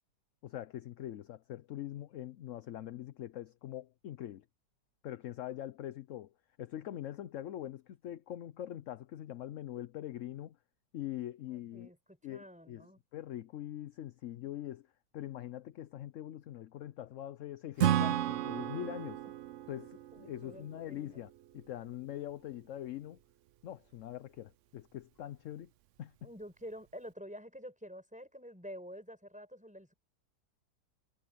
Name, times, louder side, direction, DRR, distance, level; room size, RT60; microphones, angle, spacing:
voice 1, 0.4-4.4 5.0-6.3 6.6-10.6 10.9-11.9 12.2-14.9 15.1-19.2 19.7-23.2 23.6-25.7 26.0-26.3, left 12 dB, 65° left, 0.9 m, -43 dB
voice 2, 11.5-13.0 20.1-21.0 26.2-29.9, equal, 5° right, 5.7 m, -48 dB
Acoustic guitar / Strum, 17.8-21.4, right 11 dB, 65° right, 0.7 m, -33 dB
omnidirectional pair, 1.7 m